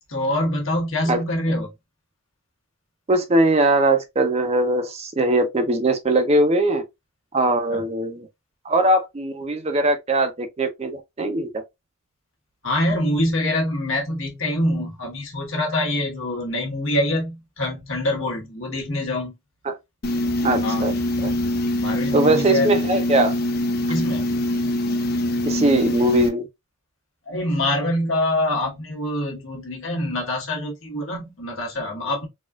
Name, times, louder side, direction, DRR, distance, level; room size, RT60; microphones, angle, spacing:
voice 1, 0.1-1.7 7.7-7.8 12.6-19.3 20.6-20.9 21.8-22.7 23.9-24.3 27.3-32.3, left 1 dB, 65° left, 1.2 m, -25 dB
voice 2, 3.1-6.8 7.3-8.3 8.6-11.5 19.6-19.8 20.4-20.9 21.2-21.3 22.1-23.3 25.4-26.5, right 2 dB, 30° right, 0.5 m, -20 dB
sound 1, 20.0-26.3, left 1 dB, 45° left, 0.5 m, -24 dB
4.1 x 2.4 x 2.3 m
head